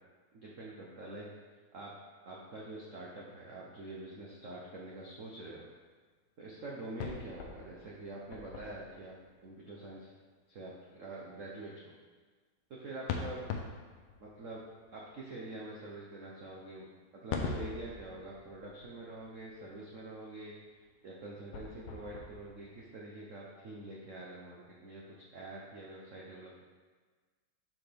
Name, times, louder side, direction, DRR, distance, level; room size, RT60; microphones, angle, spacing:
voice 1, 0.3-1.3 1.7-1.9 2.2-5.6 6.4-9.2 9.4-10.1 10.5-11.9 12.7-13.4 14.2-14.6 14.9-16.8 17.1-20.8 21.0-25.0 25.3-26.6, right 2 dB, 85° right, -4 dB, 0.6 m, -45 dB
sound 1, 6.9-9.3 13.1-15.0 17.3-20.2 20.7-20.8 21.1-22.8, left 5 dB, 80° left, 1.4 m, -42 dB
6.0 x 5.0 x 3.4 m, 1.4 s
omnidirectional pair, 2.3 m